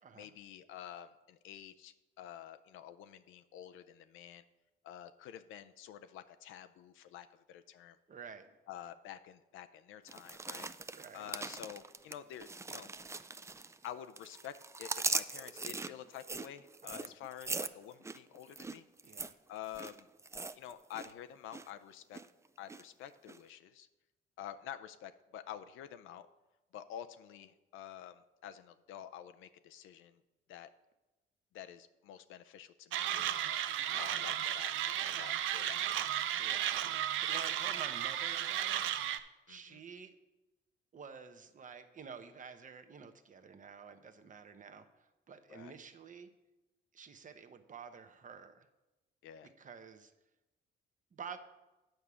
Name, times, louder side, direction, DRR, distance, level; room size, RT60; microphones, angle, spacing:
voice 1, 0.1-4.4 4.8-8.0 8.7-10.7 11.1-12.9 13.8-18.8 19.5-20.1 20.5-22.2 22.6-23.9 24.4-26.3 26.7-30.2 30.5-30.7 31.5-33.6 34.0-34.7 35.2-36.2 39.5-39.8 45.5-45.7 49.2-49.5, left 10 dB, 85° left, 9 dB, 0.5 m, -49 dB
voice 2, 8.1-8.5 10.9-11.3 16.8-17.1 19.0-19.4 33.9-34.3 36.4-38.8 39.5-40.1 40.9-46.3 46.9-48.7 49.6-50.1 51.1-51.4, right 6 dB, 40° right, 9 dB, 0.9 m, -50 dB
sound 1, 10.1-13.9 14.2-21.1 21.4-21.7 22.1-22.8 23.3-23.4, right 3 dB, 15° right, 0.4 m, -41 dB
Mechanisms, 32.9-39.2, right 11 dB, 85° right, 0.5 m, -34 dB
9.1 x 4.9 x 6.9 m, 1.0 s
cardioid pair, 90°, 20 cm